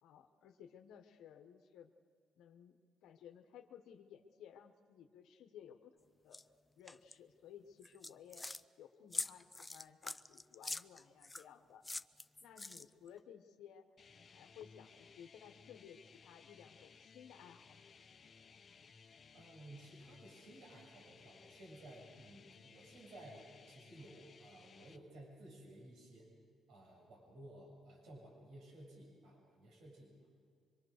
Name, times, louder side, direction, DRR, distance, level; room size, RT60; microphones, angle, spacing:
voice 1, 0.0-1.9 2.4-6.4 6.8-11.8 12.4-13.9 14.1-17.9, left 9 dB, 85° left, 5 dB, 1.2 m, -57 dB
sound 1, 6.3-6.4 6.9-7.2 7.8-8.6 9.1-11.5 11.8-13.1, left 2 dB, 15° left, 0.5 m, -44 dB
sound 2, 14.0-25.0, left 5 dB, 45° left, 1.2 m, -61 dB
voice 2, 19.3-26.3 26.7-30.3, right 1 dB, 75° right, -1 dB, 7.5 m, -56 dB
24.0 x 24.0 x 6.6 m, 2.1 s
cardioid pair, 90°, 0 cm